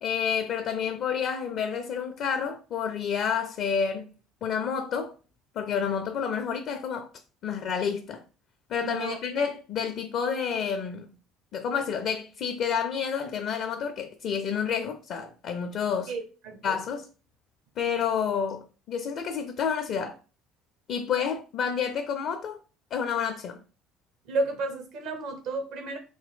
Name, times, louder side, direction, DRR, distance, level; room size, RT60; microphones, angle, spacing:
voice 1, 0.0-4.1 4.4-5.1 5.5-7.1 7.4-8.2 8.7-11.1 11.5-16.1 16.6-17.1 17.8-20.2 20.9-22.6 22.9-23.6, left 7 dB, 55° left, 0.4 m, -29 dB
voice 2, 8.8-9.2 16.1-16.8 24.3-26.0, right 2 dB, 65° right, 1.0 m, -32 dB
3.4 x 2.2 x 3.5 m
hypercardioid pair, 60°, 0 cm